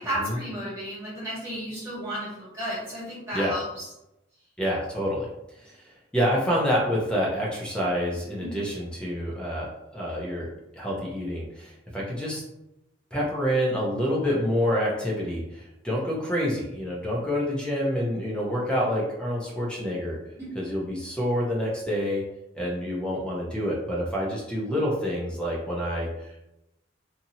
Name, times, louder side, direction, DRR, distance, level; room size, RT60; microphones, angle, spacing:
voice 1, 0.0-3.8 8.4-8.6 20.3-20.5, equal, 15° right, -8 dB, 1.3 m, -33 dB
voice 2, 4.6-5.3 5.8-5.9 6.1-10.5 10.7-12.4 13.1-20.2 20.5-22.2 22.5-26.4, equal, 5° left, -4 dB, 0.6 m, -27 dB
2.8 x 2.6 x 2.7 m, 0.89 s
head